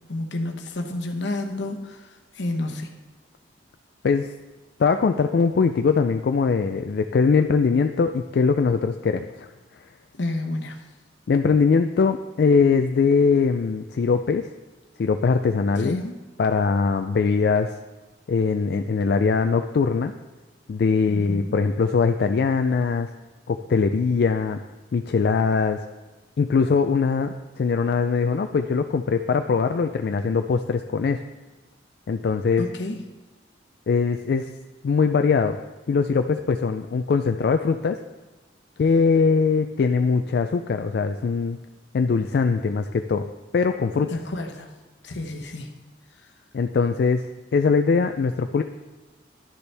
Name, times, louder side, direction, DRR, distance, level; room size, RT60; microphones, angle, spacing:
voice 1, 0.1-2.0 2.4-2.9 10.2-10.8 15.8-16.2 21.1-21.5 32.6-33.0 44.1-44.7 45.0-45.7, left 2 dB, 80° left, 4 dB, 1.0 m, -30 dB
voice 2, 4.8-9.5 11.3-14.5 15.0-16.0 16.4-17.8 18.3-20.1 20.7-23.1 23.5-24.6 24.9-25.8 26.4-31.2 32.1-32.7 33.9-34.5 34.8-35.6 35.9-38.0 38.8-41.6 41.9-44.1 46.5-47.3 47.5-48.6, left 5 dB, 60° left, 7 dB, 0.3 m, -21 dB
11.5 x 6.9 x 3.4 m, 1.2 s
head